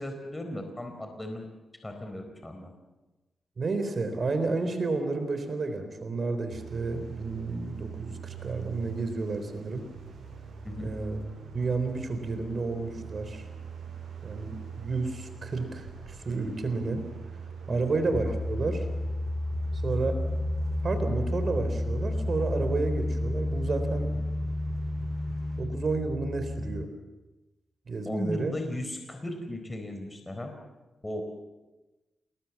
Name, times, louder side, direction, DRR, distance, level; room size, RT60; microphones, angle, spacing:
voice 1, 0.0-1.5 1.8-2.7 10.6-10.9 17.7-17.8 28.1-30.5 31.0-31.2, left 1 dB, 15° left, 5 dB, 4.2 m, -36 dB
voice 2, 3.6-9.9 10.8-11.2 11.5-13.4 14.2-17.0 17.7-18.9 19.8-20.2 20.8-24.1 25.6-26.9 27.9-28.6, right 3 dB, 50° right, 8 dB, 3.8 m, -31 dB
sound 1, 6.5-25.6, right 6 dB, 85° right, 5.6 m, -43 dB
sound 2, 18.1-26.9, left 1 dB, 40° left, 2.6 m, -31 dB
28.0 x 20.5 x 7.3 m, 1.1 s
cardioid pair, 85°, 0 cm